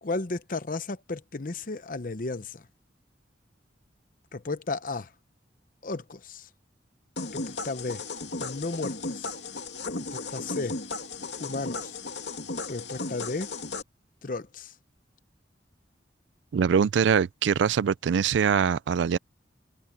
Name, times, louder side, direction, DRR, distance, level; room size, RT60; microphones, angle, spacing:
voice 1, 0.0-2.6 4.3-5.1 5.8-6.5 7.3-8.0 8.4-9.3 10.1-10.8 11.4-11.9 12.7-13.5 14.2-14.7, left 3 dB, 50° left, 0.8 m, -34 dB
sound 1, 7.2-13.8, left 3 dB, 75° left, 2.6 m, -35 dB
voice 2, 16.5-19.2, right 7 dB, 90° right, 0.4 m, -23 dB
head